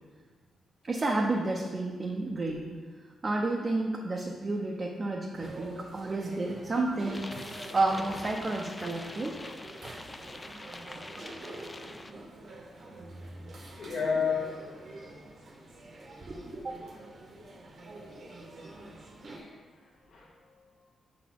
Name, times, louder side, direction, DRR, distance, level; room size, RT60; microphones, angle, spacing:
voice 1, 0.8-2.7 3.2-7.3 7.7-9.4 13.6-13.7 16.2-16.7, right 2 dB, 30° right, 0 dB, 0.6 m, -31 dB
sound 1, 5.3-19.4, right 2 dB, 55° right, 1.0 m, -46 dB
sound 2, 7.1-12.1, left 2 dB, 20° left, 0.4 m, -45 dB
voice 2, 13.8-14.6 17.9-18.0 19.3-20.9, left 6 dB, 65° left, -5 dB, 0.9 m, -34 dB
5.5 x 4.2 x 5.8 m, 1.5 s
cardioid pair, 115°, 0 cm